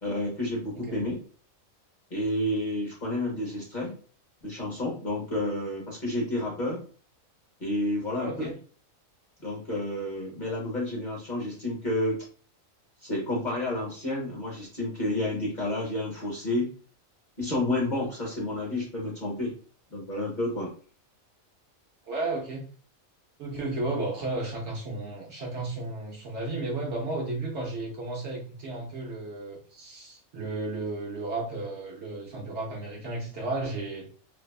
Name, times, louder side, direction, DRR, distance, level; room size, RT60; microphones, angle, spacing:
voice 1, 0.0-1.2 2.1-3.9 4.4-6.8 7.6-8.5 9.4-12.2 13.0-16.7 17.4-19.5 19.9-20.7, left 1 dB, 40° left, -3 dB, 0.7 m, -30 dB
voice 2, 8.2-8.6 22.0-22.7 23.4-34.1, right 2 dB, 60° right, -2 dB, 0.8 m, -33 dB
2.6 x 2.2 x 2.2 m, 0.42 s
omnidirectional pair, 1.5 m